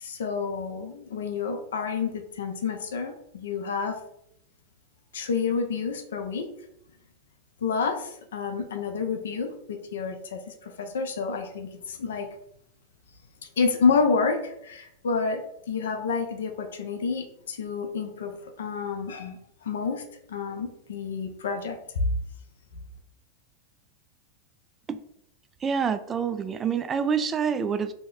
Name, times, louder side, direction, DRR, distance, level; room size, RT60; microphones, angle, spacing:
voice 1, 0.0-4.0 5.1-6.5 7.6-10.4 10.8-12.3 13.6-15.4 15.7-20.0 20.3-22.1, left 5 dB, 80° left, 5 dB, 0.6 m, -29 dB
voice 2, 25.6-27.9, right 6 dB, 25° right, 11 dB, 0.3 m, -27 dB
2.9 x 2.1 x 3.9 m, 0.74 s
hypercardioid pair, 105°, 0 cm